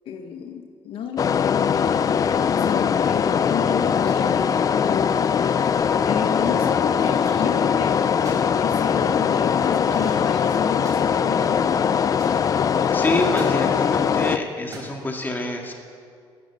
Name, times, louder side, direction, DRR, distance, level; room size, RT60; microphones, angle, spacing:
voice 1, 0.1-5.2 6.0-8.0 8.6-11.7, left 7 dB, 75° left, 6 dB, 1.1 m, -31 dB
sound 1, 1.2-14.4, left 7 dB, 40° left, 0.5 m, -21 dB
sound 2, 5.5-5.8 6.6-7.3 8.1-8.5 9.9-10.3 10.6-11.2 12.2-12.3 13.2-13.6 14.6-14.9, right 2 dB, 35° right, 4.9 m, -41 dB
voice 2, 12.9-15.7, left 2 dB, 20° left, 2 dB, 2.0 m, -26 dB
14.5 x 12.0 x 6.8 m, 2.2 s
cardioid pair, 130°, 9 cm